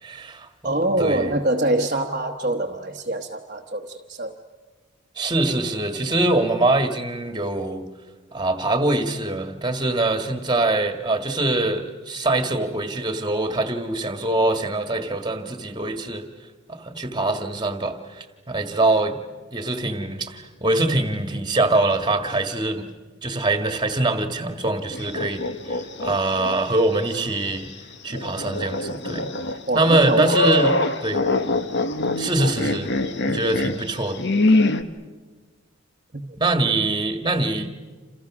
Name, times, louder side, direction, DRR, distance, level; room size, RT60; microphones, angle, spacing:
voice 1, 0.0-0.5 0.8-1.3 5.2-7.8 8.3-16.2 16.7-19.2 19.5-22.9 23.2-27.7 28.0-29.3 29.7-30.8 31.0-31.2 32.2-32.9 33.2-34.2 36.4-37.7, right 2 dB, 20° right, 7 dB, 1.8 m, -23 dB
voice 2, 0.6-4.4 29.7-30.3 30.6-30.9 36.1-36.3, right 1 dB, 40° right, 1 dB, 1.1 m, -25 dB
sound 1, 24.9-26.5 26.9-27.0 28.1-34.8, left 2 dB, 55° left, 1.2 m, -24 dB
28.5 x 28.0 x 6.1 m, 1.4 s
head